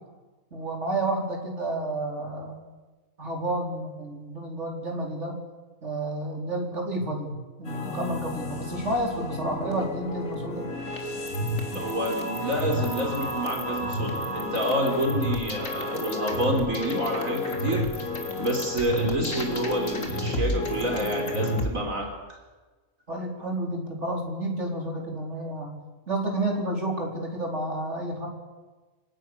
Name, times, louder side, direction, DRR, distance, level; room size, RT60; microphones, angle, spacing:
voice 1, 0.5-2.6 3.2-5.4 5.8-10.6 23.1-25.8 26.1-28.3, right 1 dB, 55° right, 0 dB, 4.8 m, -30 dB
sound 1, 7.6-21.7, left 1 dB, 70° left, 3.9 m, -31 dB
voice 2, 11.7-18.1 18.4-22.4, equal, 75° right, 1 dB, 4.4 m, -28 dB
25.5 x 17.5 x 9.9 m, 1.2 s
omnidirectional pair, 1.4 m